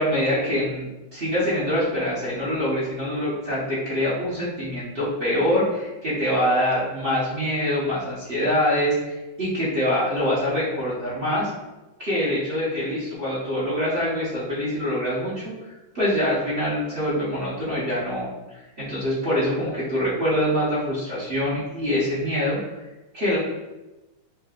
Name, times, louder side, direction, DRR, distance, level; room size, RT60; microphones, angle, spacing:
voice 1, 0.0-11.5 12.0-15.5 15.9-22.6 23.1-23.4, equal, 35° right, -9 dB, 1.0 m, -24 dB
6.4 x 2.3 x 2.4 m, 1.0 s
omnidirectional pair, 2.3 m